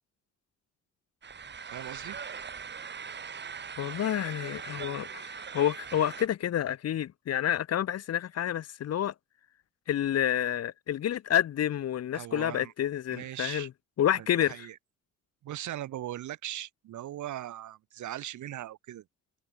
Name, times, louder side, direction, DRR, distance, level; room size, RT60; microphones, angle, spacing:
sound 1, 1.2-6.3, right 6 dB, 35° right, 1.7 m, -41 dB
voice 1, 1.6-2.2 12.1-12.7 13.1-13.7 14.2-14.8 15.4-19.0, right 13 dB, 75° right, 2.2 m, -39 dB
voice 2, 3.8-9.1 9.9-13.7 14.0-14.5, left 11 dB, 55° left, 1.0 m, -29 dB
cardioid pair, 90°, 30 cm